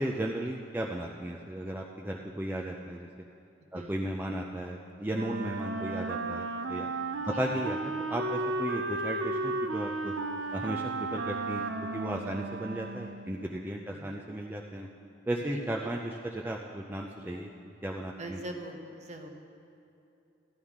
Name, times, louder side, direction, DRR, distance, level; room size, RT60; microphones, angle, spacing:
voice 1, 0.0-3.1 3.7-6.9 7.3-7.8 8.1-10.1 10.5-11.6 11.9-14.9 15.3-17.5 17.8-18.4, right 1 dB, 10° right, -1 dB, 0.5 m, -35 dB
Wind instrument woodwind instrument, 5.1-13.4, right 2 dB, 75° right, 0.6 m, -34 dB
voice 2, 15.5-15.9 18.2-19.3, right 1 dB, 40° right, 3 dB, 1.0 m, -42 dB
16.0 x 11.5 x 3.6 m, 2.7 s
head